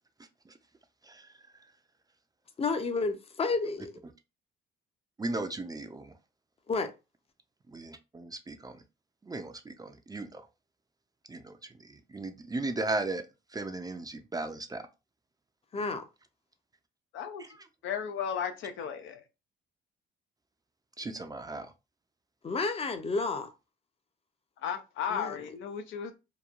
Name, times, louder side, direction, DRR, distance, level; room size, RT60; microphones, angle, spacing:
voice 1, 2.6-3.9 6.7-6.9 15.7-16.0 22.4-23.5 25.1-25.4, left 3 dB, 30° left, 0.5 m, -31 dB
voice 2, 5.2-6.1 7.7-8.8 9.2-10.5 11.3-11.5 11.8-13.2 13.5-14.8 17.4-17.5 21.0-21.7, right 2 dB, 20° right, 0.4 m, -36 dB
voice 3, 17.1-17.4 17.8-19.2 24.6-26.1, left 7 dB, 75° left, 0.5 m, -34 dB
2.9 x 2.2 x 2.4 m
cardioid pair, 90°, 20 cm